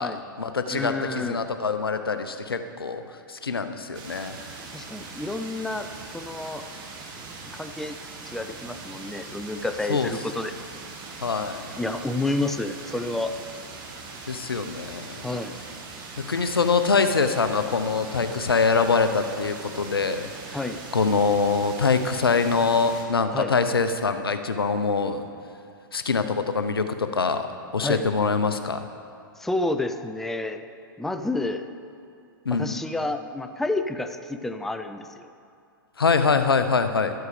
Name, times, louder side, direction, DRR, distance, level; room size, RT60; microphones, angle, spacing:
voice 1, 0.0-3.0 3.3-4.4 9.9-10.1 11.2-11.6 14.3-15.2 16.2-20.6 20.9-25.2 25.9-27.5 27.7-28.9 32.4-32.8 36.0-37.1, left 4 dB, 85° left, 9 dB, 0.7 m, -24 dB
voice 2, 0.7-1.4 4.7-6.6 7.5-8.0 8.3-10.5 11.8-13.4 15.2-15.6 20.5-20.8 23.3-23.5 27.8-28.0 29.4-30.7 31.0-31.7 32.5-35.3, left 2 dB, 5° left, 8 dB, 0.4 m, -30 dB
sound 1, 3.9-23.0, right 4 dB, 35° right, 1.7 m, -41 dB
12.5 x 8.2 x 4.9 m, 2.4 s
figure-of-eight pair, 110°, 12 cm